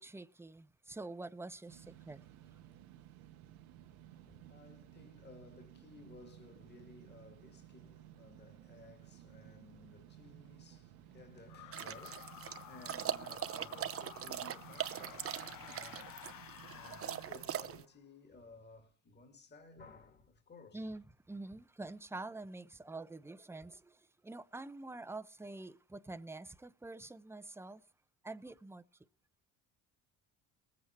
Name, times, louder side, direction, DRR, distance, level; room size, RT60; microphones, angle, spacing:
voice 1, 0.0-2.2 20.7-27.8 28.2-28.8, right 2 dB, 5° right, 0.7 m, -46 dB
sound 1, 1.7-17.8, right 12 dB, 90° right, 1.3 m, -57 dB
voice 2, 3.9-16.4 16.7-20.9, left 3 dB, 30° left, 2.3 m, -57 dB
sound 2, 11.5-17.9, left 14 dB, 65° left, 0.7 m, -53 dB
sound 3, 11.7-17.8, right 10 dB, 40° right, 0.8 m, -41 dB
19.5 x 8.4 x 4.5 m
cardioid pair, 90°, 35 cm